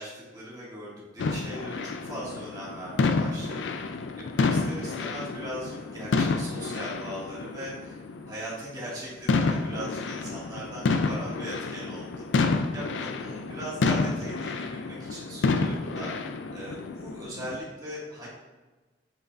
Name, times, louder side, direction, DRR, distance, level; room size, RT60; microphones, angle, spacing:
voice 1, 0.0-16.1 16.5-18.3, equal, 20° right, -7 dB, 2.0 m, -39 dB
sound 1, 1.2-8.4 8.9-9.0 9.3-17.6, left 3 dB, 85° left, 0.4 m, -29 dB
7.8 x 4.9 x 2.6 m, 1.2 s
head